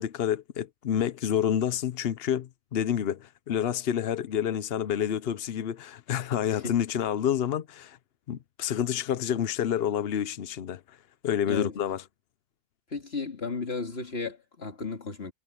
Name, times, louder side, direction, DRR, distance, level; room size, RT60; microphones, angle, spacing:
voice 1, 0.0-8.0 8.3-11.0 11.2-12.0, left 9 dB, 55° left, 0.7 m, -28 dB
voice 2, 12.9-15.3, left 4 dB, 35° left, 2.5 m, -34 dB
omnidirectional pair, 1.8 m